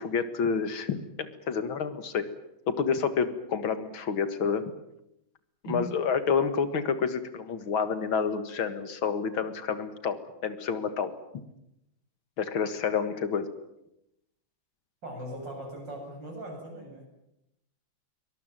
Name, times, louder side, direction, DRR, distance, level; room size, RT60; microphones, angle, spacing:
voice 1, 0.0-2.3 2.7-4.6 5.7-11.1 12.4-13.5, left 6 dB, 75° left, 11 dB, 2.5 m, -29 dB
voice 2, 5.6-5.9 15.0-17.1, right 1 dB, 60° right, 2 dB, 8.5 m, -39 dB
23.0 x 20.5 x 9.1 m, 0.83 s
omnidirectional pair, 2.2 m